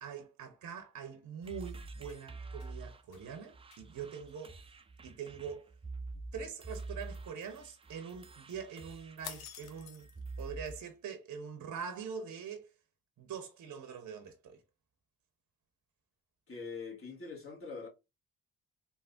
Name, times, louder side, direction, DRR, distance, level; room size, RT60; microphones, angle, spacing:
voice 1, 0.0-4.6 5.0-5.7 6.3-10.1 10.4-12.7 13.2-14.6, right 6 dB, 50° right, 0.7 m, -44 dB
sound 1, 1.4-10.9, right 3 dB, 15° right, 0.4 m, -47 dB
sound 2, 1.8-2.7 3.1-3.2 3.7-3.8 4.3-4.5 9.2-10.3, left 9 dB, 65° left, 0.6 m, -49 dB
voice 2, 16.5-17.9, left 4 dB, 35° left, 1.5 m, -43 dB
3.3 x 2.2 x 2.4 m
hypercardioid pair, 45°, 39 cm